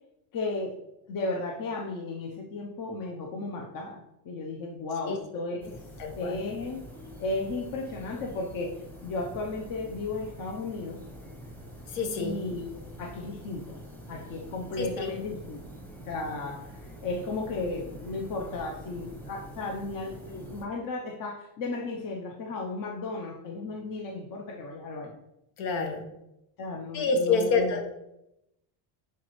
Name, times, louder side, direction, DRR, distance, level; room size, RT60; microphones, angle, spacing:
voice 1, 0.3-0.7 1.1-4.0 4.2-5.7 6.1-6.8 7.2-8.7 9.0-11.0 12.2-12.6 13.0-13.8 14.1-15.6 16.1-16.7 17.0-25.1 26.6-27.8, left 3 dB, 40° left, 1 dB, 0.9 m, -34 dB
voice 2, 5.0-5.4 6.0-6.4 11.9-12.4 14.8-15.1 25.6-26.0 26.9-27.8, left 4 dB, 70° left, 4 dB, 1.5 m, -28 dB
sound 1, 5.6-20.7, right 1 dB, 5° left, 0.9 m, -46 dB
10.5 x 4.1 x 3.2 m, 0.85 s
cardioid pair, 150°, 49 cm